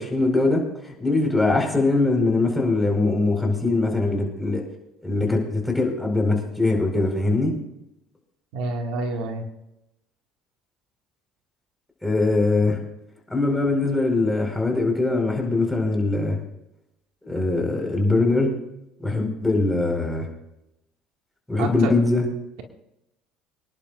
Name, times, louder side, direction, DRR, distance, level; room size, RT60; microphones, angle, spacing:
voice 1, 0.0-4.6 5.0-7.5 12.0-12.8 13.3-16.4 17.2-18.6 19.0-20.3 21.5-22.3, left 2 dB, 5° left, 1 dB, 4.5 m, -22 dB
voice 2, 8.5-9.5 21.6-21.9, right 3 dB, 75° right, 2 dB, 2.0 m, -28 dB
25.5 x 11.0 x 2.5 m, 0.88 s
supercardioid pair, 90°, 0 cm